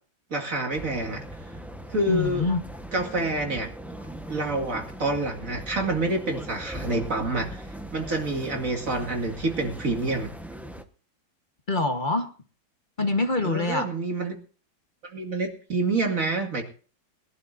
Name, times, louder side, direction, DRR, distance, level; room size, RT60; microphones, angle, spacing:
voice 1, 0.3-1.2 1.9-2.5 2.9-3.7 4.3-7.6 7.9-10.3 13.4-14.3 15.0-16.6, right 2 dB, 40° right, 2 dB, 2.6 m, -27 dB
sound 1, 0.7-10.8, right 1 dB, ahead, 0.4 m, -39 dB
voice 2, 2.1-2.6 11.7-12.3 13.0-13.9, left 3 dB, 30° left, 6 dB, 1.0 m, -25 dB
22.0 x 12.0 x 2.6 m, 0.38 s
omnidirectional pair, 2.1 m